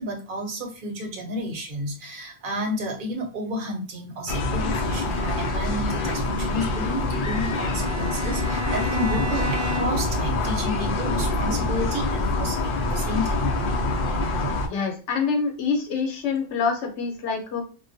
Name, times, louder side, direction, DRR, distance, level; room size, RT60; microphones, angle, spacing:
voice 1, 0.0-13.5, equal, 55° right, 1 dB, 0.8 m, -31 dB
sound 1, 4.3-14.7, left 2 dB, 60° left, 0.6 m, -25 dB
Bowed string instrument, 7.1-10.2, equal, 25° right, 0.5 m, -32 dB
voice 2, 14.7-17.6, left 5 dB, 85° left, 3 dB, 1.0 m, -26 dB
2.2 x 2.1 x 2.5 m, 0.36 s
omnidirectional pair, 1.1 m